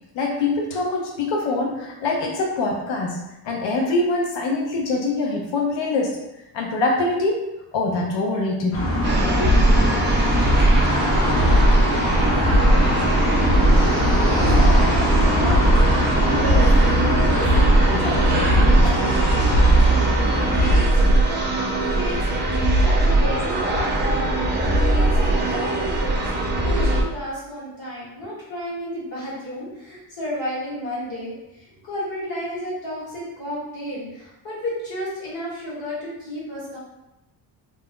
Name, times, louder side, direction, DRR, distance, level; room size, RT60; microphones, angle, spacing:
voice 1, 0.2-3.2 3.4-6.2 6.5-7.5 7.7-8.8 9.4-9.6, left 2 dB, 90° left, 0 dB, 0.6 m, -24 dB
sound 1, 8.7-20.8, equal, 30° left, 0.6 m, -22 dB
sound 2, 9.0-27.0, right 1 dB, 25° right, 0.4 m, -19 dB
voice 2, 12.1-12.6 12.8-15.8 16.3-18.5 18.8-19.4 19.8-20.1 20.5-22.5 22.8-23.6 24.0-36.8, equal, 55° left, -7 dB, 1.4 m, -33 dB
2.5 x 2.2 x 3.5 m, 0.91 s
cardioid pair, 170°, 43 cm